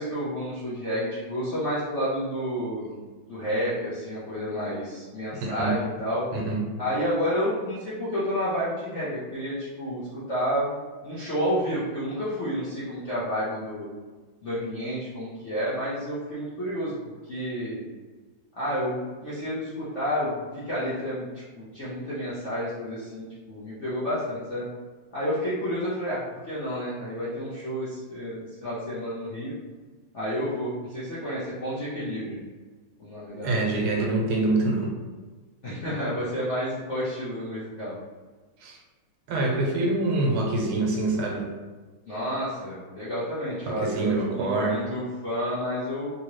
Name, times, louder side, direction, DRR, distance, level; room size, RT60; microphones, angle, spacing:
voice 1, 0.0-3.0 3.3-6.2 6.8-10.8 11.0-13.9 14.4-16.9 17.3-17.8 18.6-24.7 25.1-29.5 30.1-32.4 33.0-33.7 33.9-34.1 34.4-34.5 35.6-37.9 42.1-46.1, equal, 60° left, -10 dB, 0.7 m, -30 dB
voice 2, 5.4-5.7 6.3-6.6 33.4-34.9 38.6-38.8 39.3-41.5 43.7-44.8, right 2 dB, 80° right, 0 dB, 1.6 m, -25 dB
3.7 x 2.7 x 3.0 m, 1.4 s
omnidirectional pair, 2.3 m